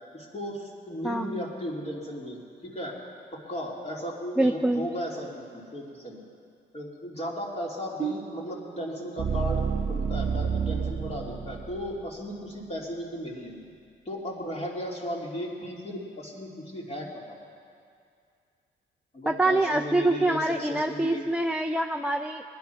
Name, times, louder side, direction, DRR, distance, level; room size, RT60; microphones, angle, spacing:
voice 1, 0.1-3.0 3.3-6.2 6.7-13.6 14.0-17.4 19.1-21.2, equal, 30° left, -2 dB, 3.2 m, -36 dB
voice 2, 1.0-1.4 4.4-4.8 19.3-22.4, right 2 dB, 5° right, 6 dB, 0.5 m, -25 dB
sound 1, 8.0-12.1, right 6 dB, 40° right, 0.8 m, -30 dB
19.5 x 11.0 x 5.9 m, 2.4 s
cardioid pair, 90°, 20 cm